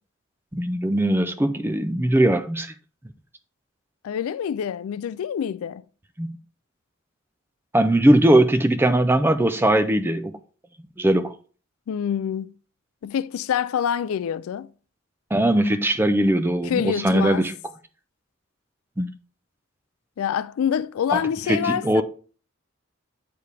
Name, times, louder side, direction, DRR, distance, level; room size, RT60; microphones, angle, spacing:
voice 1, 0.5-2.7 6.2-6.3 7.7-10.3 11.0-11.3 15.3-17.5 19.0-19.1 21.5-22.0, right 1 dB, 10° right, 0.4 m, -20 dB
voice 2, 4.0-5.8 11.9-12.5 13.0-14.7 16.6-17.5 20.2-22.0, left 8 dB, 80° left, 0.3 m, -26 dB
8.2 x 4.7 x 3.4 m
head